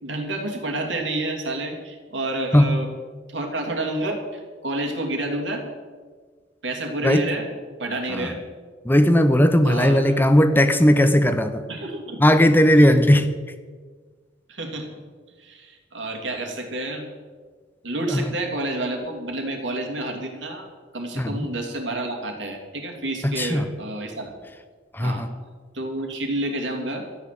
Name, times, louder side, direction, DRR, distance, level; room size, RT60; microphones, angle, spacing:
voice 1, 0.0-2.9 3.3-5.6 6.6-7.5 7.8-8.4 9.6-10.2 11.7-12.3 12.8-12.9 14.5-14.9 15.4-17.1 17.8-24.3 25.0-25.3 25.7-27.0, right 1 dB, 80° right, 2 dB, 2.8 m, -29 dB
voice 2, 8.9-11.6 12.2-13.3 21.2-21.3 23.2-23.6 24.9-25.3, equal, 10° left, 9 dB, 0.7 m, -17 dB
13.5 x 9.8 x 7.7 m, 1.5 s
head